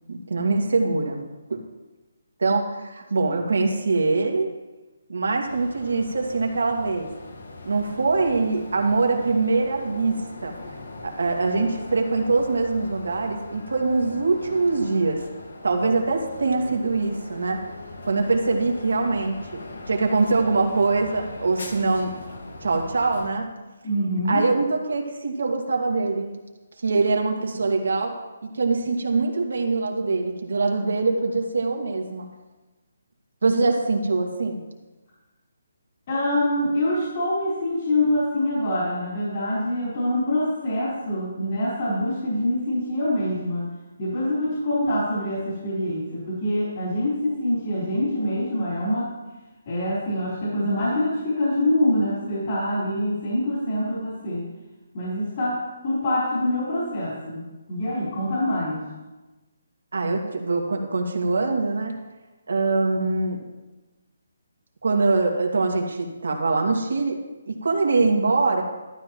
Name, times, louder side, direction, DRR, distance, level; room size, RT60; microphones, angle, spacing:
voice 1, 0.1-1.2 1.5-1.6 2.4-4.5 5.1-7.1 7.7-10.6 11.0-15.2 15.6-17.6 18.0-19.4 19.9-22.1 22.6-23.5 24.3-26.3 26.8-28.1 28.4-32.3 33.4-34.6 59.9-61.9 62.5-63.4 64.8-67.2 67.5-68.6, right 3 dB, 80° right, 2 dB, 2.2 m, -23 dB
sound 1, 5.4-23.3, left 2 dB, 70° left, 1.7 m, -40 dB
voice 2, 23.8-24.5 36.1-43.7 44.0-49.1 49.7-54.5 54.9-58.8, left 1 dB, 35° left, -8 dB, 4.3 m, -25 dB
13.0 x 12.5 x 3.1 m, 1.1 s
hypercardioid pair, 170°, 0 cm